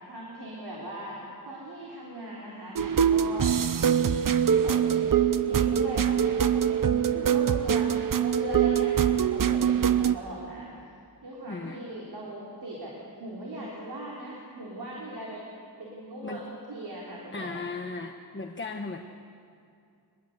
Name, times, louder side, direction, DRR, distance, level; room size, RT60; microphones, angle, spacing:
voice 1, 0.1-3.5 4.4-10.7 11.2-15.4 15.8-17.6, right 1 dB, 80° right, -4 dB, 4.1 m, -39 dB
sound 1, 2.8-10.2, right 8 dB, 55° right, 0.8 m, -23 dB
voice 2, 11.5-11.8 16.2-16.4 17.3-19.0, left 4 dB, 30° left, 3 dB, 1.2 m, -36 dB
23.0 x 21.0 x 8.1 m, 2.4 s
wide cardioid pair, 105°, 39 cm